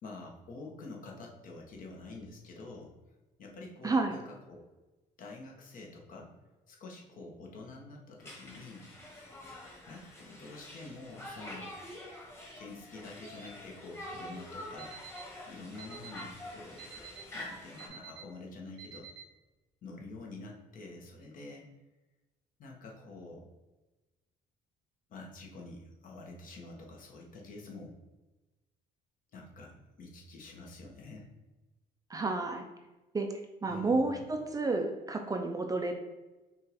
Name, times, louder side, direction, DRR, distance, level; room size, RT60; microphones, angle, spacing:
voice 1, 0.0-2.9 3.4-4.6 5.2-6.3 6.7-8.9 9.9-11.7 12.6-14.9 15.5-19.1 19.8-21.7 22.6-23.5 25.1-28.0 29.3-31.3 33.7-34.2, left 2 dB, 55° left, 0 dB, 1.1 m, -47 dB
voice 2, 3.8-4.2 32.1-32.6 33.1-33.3 33.6-35.9, right 3 dB, 20° right, 4 dB, 0.4 m, -30 dB
Conversation, 8.2-17.9, left 1 dB, 15° left, 1.3 m, -46 dB
Alarm, 14.8-15.2 15.8-16.2 16.8-17.2 17.8-18.2 18.8-19.2, right 9 dB, 85° right, 0.8 m, -47 dB
5.4 x 2.5 x 3.4 m, 1.1 s
cardioid pair, 110°, 17 cm